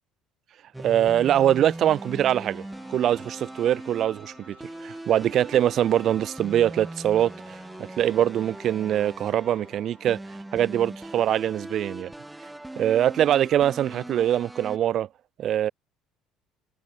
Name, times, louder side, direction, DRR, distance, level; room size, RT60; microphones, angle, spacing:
sound 1, 0.7-14.8, right 1 dB, 10° right, 1.3 m, -40 dB
voice 1, 0.8-4.6 4.8-10.2 10.5-12.1 12.8-15.1 15.4-15.7, right 11 dB, 45° right, 0.3 m, -23 dB
sound 2, 1.3-11.1, left 9 dB, 75° left, 5.1 m, -60 dB
figure-of-eight pair, 55°, 0 cm